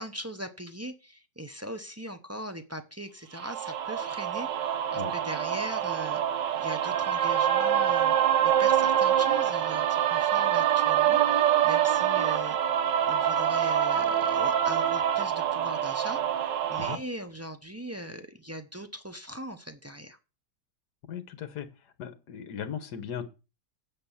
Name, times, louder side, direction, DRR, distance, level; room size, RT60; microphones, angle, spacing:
voice 1, 0.0-6.2 6.6-12.6 12.8-20.2, equal, 20° right, 6 dB, 0.4 m, -40 dB
sound 1, 3.4-17.0, right 10 dB, 80° right, 1.6 m, -25 dB
voice 2, 21.0-21.7 22.0-23.3, left 8 dB, 70° left, 11 dB, 1.7 m, -37 dB
9.5 x 6.2 x 7.0 m, 0.31 s
omnidirectional pair, 1.9 m